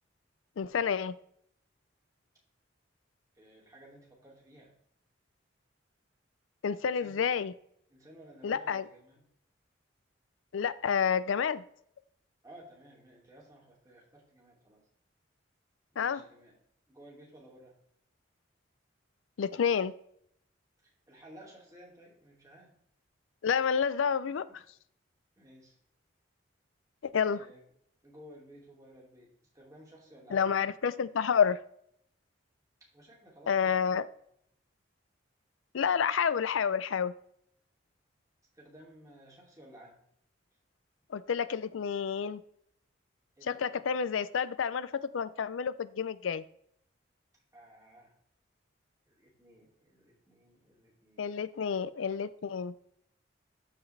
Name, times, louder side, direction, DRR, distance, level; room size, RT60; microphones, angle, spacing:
voice 1, 0.6-1.1 6.6-7.5 8.4-8.8 10.5-11.6 16.0-16.2 19.4-19.9 23.4-24.5 27.0-27.4 30.3-31.6 33.5-34.1 35.7-37.1 41.1-42.4 43.4-46.4 51.2-52.7, left 7 dB, 80° left, 16 dB, 0.4 m, -29 dB
voice 2, 3.3-4.8 6.8-7.2 7.9-9.3 12.4-14.8 15.9-16.6 16.9-17.7 20.8-22.7 24.2-24.4 25.4-25.8 27.3-27.6 28.0-30.5 32.9-33.9 38.5-40.0 43.4-43.8 47.5-48.1 49.1-51.3, right 1 dB, 15° right, -3 dB, 2.6 m, -55 dB
13.5 x 4.8 x 3.3 m, 0.69 s
head